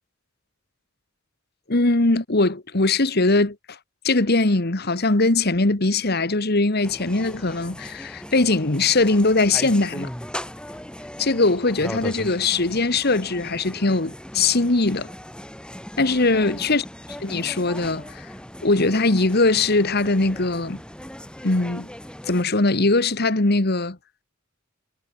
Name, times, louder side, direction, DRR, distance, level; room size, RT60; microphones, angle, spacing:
voice 1, 1.7-3.8 4.0-10.1 11.2-15.1 16.0-16.8 17.2-18.3 18.6-20.8 21.4-21.9 22.3-24.0, left 2 dB, 50° left, 1.7 m, -21 dB
sound 1, 6.8-22.4, equal, 5° left, 3.7 m, -38 dB
head